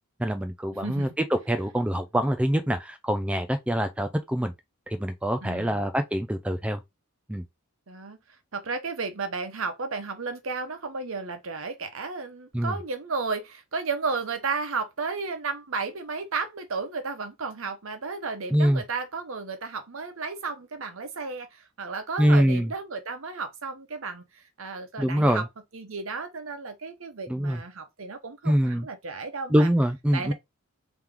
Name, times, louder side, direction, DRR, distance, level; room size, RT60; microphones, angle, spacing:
voice 1, 0.2-1.1 1.5-4.5 4.9-6.8 7.3-7.4 12.5-12.7 18.5-18.8 22.2-22.7 25.0-25.4 27.3-27.6 28.5-28.9 29.5-30.3, equal, 5° right, 0.3 m, -24 dB
voice 2, 0.8-1.2 5.4-5.8 7.9-8.2 8.5-25.5 25.7-29.7 30.1-30.3, right 4 dB, 65° right, 0.9 m, -33 dB
3.7 x 2.9 x 3.3 m
head